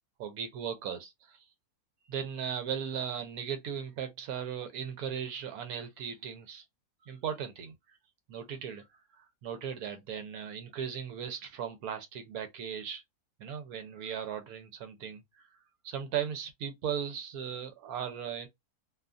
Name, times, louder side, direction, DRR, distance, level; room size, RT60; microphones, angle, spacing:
voice 1, 0.2-1.4 2.1-6.6 7.0-8.0 8.3-8.9 9.4-13.0 13.4-15.2 15.8-18.5, right 8 dB, 75° right, 1.1 m, -37 dB
2.7 x 2.4 x 2.3 m
omnidirectional pair, 1.6 m